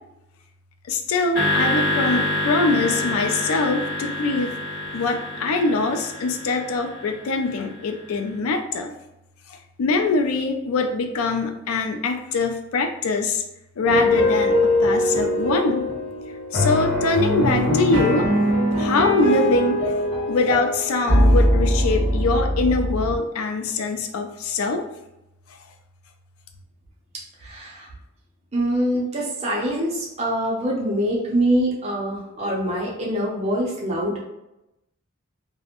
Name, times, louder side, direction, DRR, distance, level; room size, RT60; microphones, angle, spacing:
voice 1, 0.9-4.6 4.9-8.9 9.5-13.4 13.8-15.9 16.5-18.3 18.8-19.9 20.3-24.9, left 3 dB, 85° left, 5 dB, 0.4 m, -23 dB
sound 1, 1.3-7.7, left 1 dB, 55° left, 1.3 m, -27 dB
sound 2, 13.8-23.2, equal, 25° left, 1.1 m, -21 dB
voice 2, 27.4-27.9 28.5-34.2, right 1 dB, 30° right, -3 dB, 0.5 m, -24 dB
2.4 x 2.0 x 2.8 m, 0.89 s
head